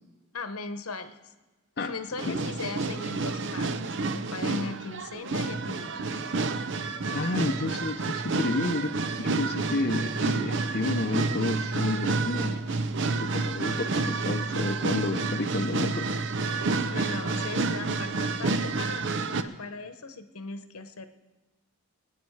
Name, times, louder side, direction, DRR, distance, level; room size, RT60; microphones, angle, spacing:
voice 1, 0.3-1.3 1.8-6.2 16.8-21.1, left 3 dB, 80° left, 9 dB, 1.0 m, -38 dB
sound 1, 2.2-19.4, right 3 dB, 55° right, 0.6 m, -29 dB
voice 2, 6.8-12.6 13.2-16.1, left 2 dB, 45° left, 3 dB, 0.6 m, -31 dB
23.5 x 9.4 x 4.7 m, 1.2 s
head